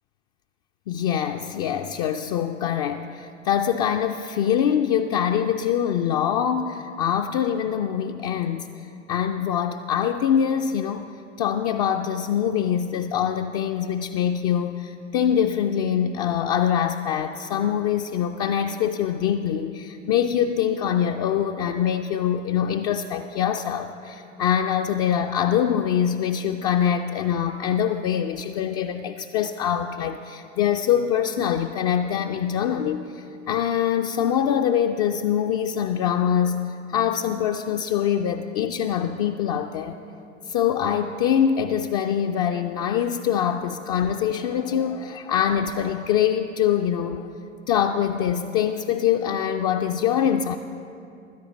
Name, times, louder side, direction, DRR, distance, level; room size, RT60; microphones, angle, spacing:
voice 1, 0.9-8.7 9.1-11.1 11.4-40.0 40.4-47.3 47.7-50.6, left 9 dB, 35° left, 4 dB, 0.4 m, -24 dB
15.5 x 13.0 x 4.0 m, 2.7 s
figure-of-eight pair, 90°, 38 cm